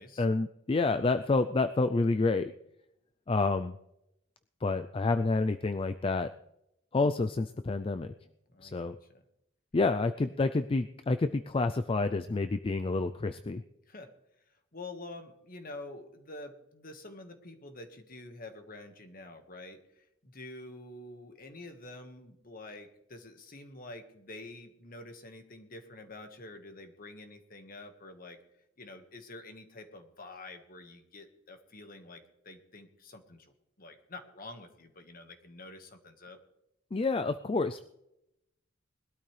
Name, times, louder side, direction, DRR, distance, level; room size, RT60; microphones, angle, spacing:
voice 1, 0.2-2.5 3.3-3.7 4.6-6.3 6.9-8.1 8.6-9.0 9.7-13.6 36.9-37.8, left 3 dB, 30° left, 10 dB, 0.4 m, -28 dB
voice 2, 8.5-9.2 13.9-14.1 14.5-28.4 28.8-33.5 33.8-36.4, left 2 dB, 50° left, 6 dB, 1.6 m, -48 dB
20.5 x 12.5 x 3.3 m, 0.84 s
head